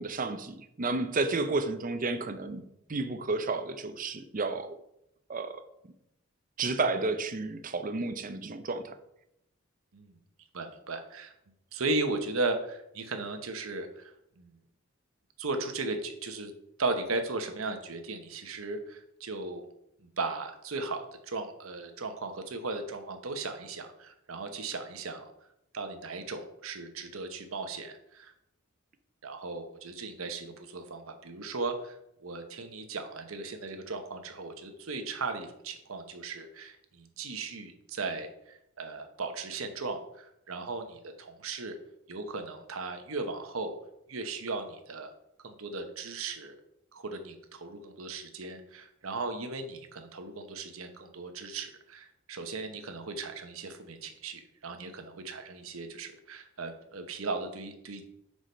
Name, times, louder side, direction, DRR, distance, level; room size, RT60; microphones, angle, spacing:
voice 1, 0.0-2.6 2.9-4.7 5.3-5.6 6.6-8.9, right 3 dB, 40° right, 9 dB, 0.6 m, -31 dB
voice 2, 10.5-11.3 11.7-14.1 14.4-14.5 15.4-16.5 16.8-19.6 20.0-25.3 25.7-28.3 29.2-41.8 42.1-43.8 44.1-45.1 45.4-46.5 46.9-58.1, right 3 dB, 85° right, 6 dB, 1.0 m, -37 dB
6.3 x 4.9 x 5.4 m, 0.80 s
head